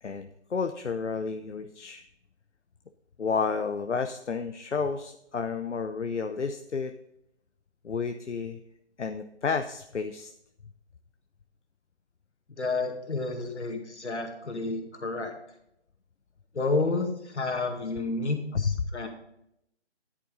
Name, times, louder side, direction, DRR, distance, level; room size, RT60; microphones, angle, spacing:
voice 1, 0.0-2.0 3.2-6.9 7.8-8.6 9.0-10.3 18.5-18.8, left 5 dB, 90° left, 8 dB, 0.7 m, -31 dB
voice 2, 12.5-15.3 16.5-19.1, left 3 dB, 75° left, 4 dB, 2.2 m, -30 dB
10.0 x 8.8 x 3.9 m, 0.78 s
figure-of-eight pair, 160°, 35 cm